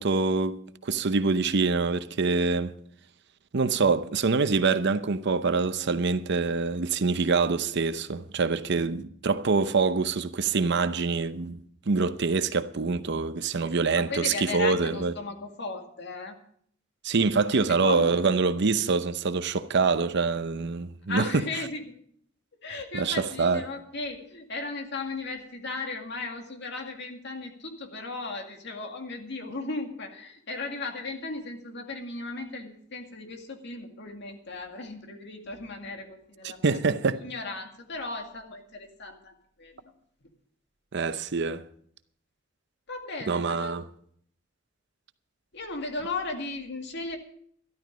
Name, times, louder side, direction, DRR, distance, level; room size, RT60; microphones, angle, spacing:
voice 1, 0.0-2.7 3.5-11.6 11.9-15.1 17.0-21.3 22.9-23.6 36.6-37.2 40.9-41.6 43.3-43.8, right 4 dB, 60° right, 0.7 m, -25 dB
voice 2, 13.6-16.4 17.5-18.2 21.1-21.9 22.6-36.8 37.2-39.8 42.9-43.8 45.5-47.2, left 3 dB, 60° left, 2.0 m, -36 dB
12.5 x 12.5 x 5.1 m
head